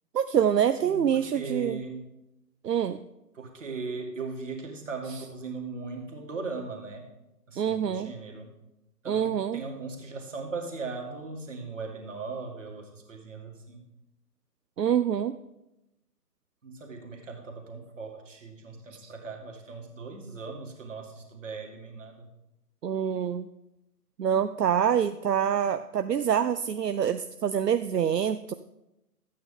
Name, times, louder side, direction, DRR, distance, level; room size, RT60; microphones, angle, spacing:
voice 1, 0.1-1.8 2.6-3.0 7.6-8.1 9.1-9.6 14.8-15.4 19.0-19.1 22.8-23.5 24.2-28.5, right 8 dB, 80° right, 11 dB, 0.6 m, -26 dB
voice 2, 0.8-2.0 3.3-7.1 7.5-8.5 9.0-13.8 16.6-22.3, right 4 dB, 50° right, 2 dB, 2.1 m, -38 dB
12.5 x 8.6 x 3.7 m, 0.91 s
figure-of-eight pair, 150°, 48 cm